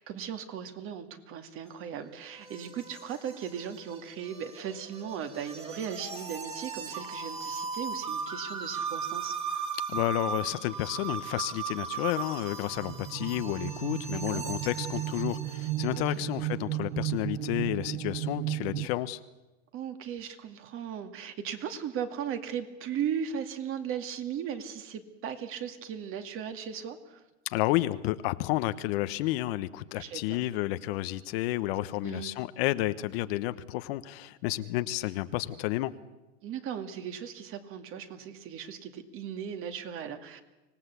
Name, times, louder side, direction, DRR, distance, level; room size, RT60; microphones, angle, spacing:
voice 1, 0.0-9.6 14.1-14.5 15.9-16.3 19.7-27.2 29.9-30.4 32.0-32.4 36.4-40.4, right 8 dB, 35° right, 8 dB, 2.3 m, -37 dB
sound 1, 1.7-16.3, right 5 dB, 15° right, 2.7 m, -38 dB
voice 2, 9.9-19.2 27.4-35.9, left 16 dB, 55° left, 12 dB, 1.1 m, -31 dB
sound 2, 12.7-18.9, right 14 dB, 50° right, 1.0 m, -34 dB
25.5 x 18.0 x 8.3 m, 1.0 s
supercardioid pair, 145°, 37 cm